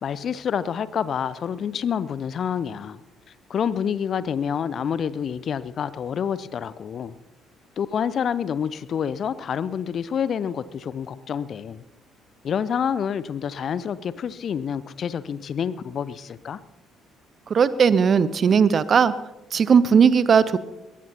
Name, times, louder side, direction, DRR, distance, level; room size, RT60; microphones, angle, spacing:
voice 1, 0.0-3.0 3.5-7.1 7.8-11.8 12.4-16.6, left 7 dB, 45° left, 17 dB, 0.6 m, -28 dB
voice 2, 17.5-19.1 19.5-20.6, right 6 dB, 40° right, 17 dB, 0.7 m, -17 dB
21.5 x 18.5 x 2.9 m, 0.99 s
figure-of-eight pair, 45°, 0 cm